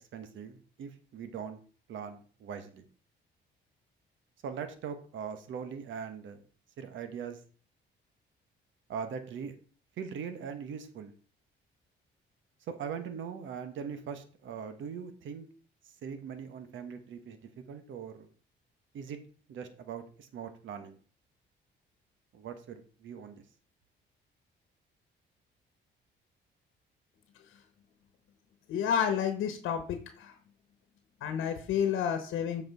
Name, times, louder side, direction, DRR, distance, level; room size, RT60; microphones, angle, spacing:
voice 1, 0.1-1.6 1.9-2.8 4.4-6.4 6.8-7.4 8.9-9.5 10.0-11.1 12.7-15.5 16.0-18.3 18.9-19.2 19.5-21.0 22.3-23.4, right 7 dB, 75° right, 9 dB, 1.2 m, -41 dB
voice 2, 28.7-30.3 31.2-32.6, left 8 dB, 85° left, 7 dB, 1.1 m, -30 dB
7.8 x 4.8 x 4.7 m, 0.40 s
cardioid pair, 90°, 20 cm